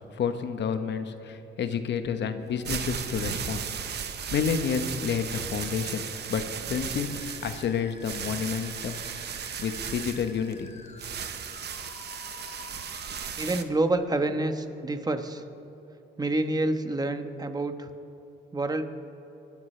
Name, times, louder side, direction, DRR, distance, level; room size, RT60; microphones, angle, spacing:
voice 1, 0.1-3.7 4.3-9.0 9.6-10.7, left 7 dB, 65° left, 8 dB, 1.1 m, -30 dB
sound 1, 2.4-13.6, right 8 dB, 55° right, 0.9 m, -36 dB
Musical instrument, 6.9-13.3, left 4 dB, 35° left, 1.2 m, -50 dB
voice 2, 13.4-15.4 16.2-17.9 18.5-18.8, right 2 dB, 20° right, 8 dB, 1.1 m, -28 dB
26.0 x 12.0 x 3.3 m, 3.0 s
cardioid pair, 90°, 20 cm